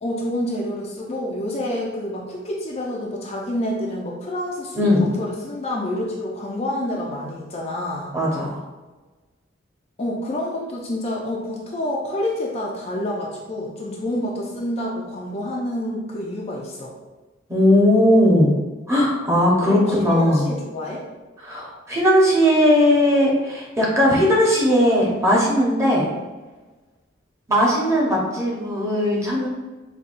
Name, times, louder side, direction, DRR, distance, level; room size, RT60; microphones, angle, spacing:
voice 1, 0.0-8.1 10.0-16.9 19.7-21.0, left 1 dB, 35° left, -2 dB, 0.5 m, -28 dB
voice 2, 8.1-8.6 17.5-18.5 18.9-20.5 21.4-26.1 27.5-29.5, equal, 15° right, -4 dB, 0.8 m, -18 dB
5.3 x 2.2 x 2.5 m, 1.2 s
head